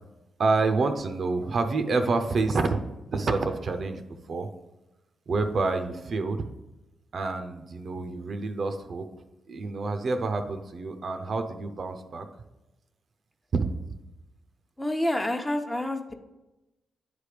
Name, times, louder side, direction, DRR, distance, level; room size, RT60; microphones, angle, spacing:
voice 1, 0.4-2.8 3.1-4.0 4.3-4.5 5.3-6.5 7.1-9.1 9.5-12.3 13.5-13.7, right 3 dB, 60° right, 7 dB, 0.6 m, -27 dB
voice 2, 14.8-16.1, left 1 dB, 15° left, 4 dB, 0.9 m, -28 dB
9.4 x 3.4 x 4.9 m, 1.0 s
hypercardioid pair, 45°, 0 cm